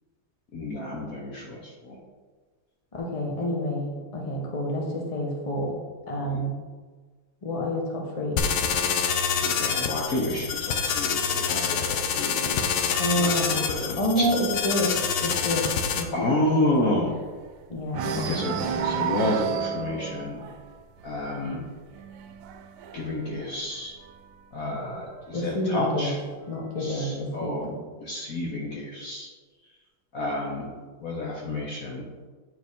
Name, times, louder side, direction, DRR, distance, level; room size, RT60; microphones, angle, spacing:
voice 1, 0.5-2.0 6.2-6.5 9.4-14.3 16.1-17.1 18.2-18.5 18.8-20.4 21.0-21.6 22.9-23.9 24.5-26.2 26.8-27.7 28.0-29.3 30.1-30.7 31.0-32.1, left 1 dB, 55° left, -3 dB, 1.0 m, -30 dB
voice 2, 2.9-5.7 6.1-6.6 7.4-8.5 13.0-16.7 17.7-19.3 25.3-26.1 26.5-27.8, equal, 30° left, -1 dB, 0.6 m, -29 dB
sound 1, 8.4-16.0, left 6 dB, 80° left, 0.8 m, -26 dB
sound 2, 9.5-12.8 13.2-13.5 13.8-13.9 14.3-17.5 17.9-24.4 25.3-26.3, right 7 dB, 85° right, 1.5 m, -35 dB
9.0 x 4.5 x 3.5 m, 1.4 s
omnidirectional pair, 2.4 m